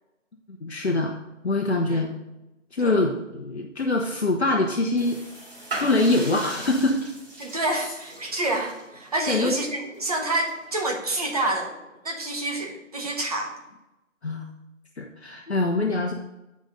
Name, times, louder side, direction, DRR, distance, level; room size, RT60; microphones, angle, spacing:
voice 1, 0.6-1.1 1.4-2.1 2.7-5.2 5.8-7.0 7.7-7.8 9.3-9.5 14.2-14.4 15.0-16.1, left 2 dB, 55° left, 1 dB, 1.0 m, -24 dB
sound 1, 5.0-11.6, right 2 dB, 45° right, 3.1 m, -40 dB
voice 2, 7.4-11.7 12.0-13.5, right 1 dB, 30° right, 1 dB, 1.3 m, -28 dB
8.9 x 5.3 x 5.2 m, 0.99 s
figure-of-eight pair, 160°, 38 cm